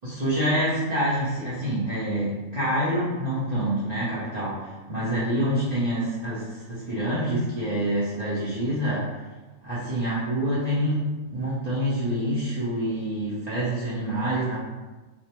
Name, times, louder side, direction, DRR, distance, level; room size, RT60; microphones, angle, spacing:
voice 1, 0.0-9.1 9.6-14.6, right 1 dB, 55° right, -11 dB, 0.4 m, -26 dB
2.5 x 2.0 x 2.8 m, 1.2 s
omnidirectional pair, 1.5 m